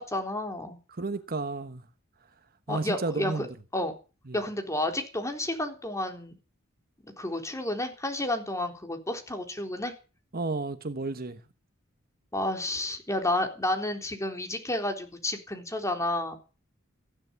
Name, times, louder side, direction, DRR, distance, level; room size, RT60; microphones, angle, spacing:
voice 1, 0.1-0.8 2.7-3.5 3.7-3.9 4.3-6.3 7.0-9.9 12.3-16.4, left 1 dB, 15° left, 3.8 m, -31 dB
voice 2, 1.0-1.8 2.7-3.5 4.3-4.4 10.3-11.4, right 3 dB, 45° right, 1.2 m, -32 dB
15.5 x 11.5 x 7.1 m
head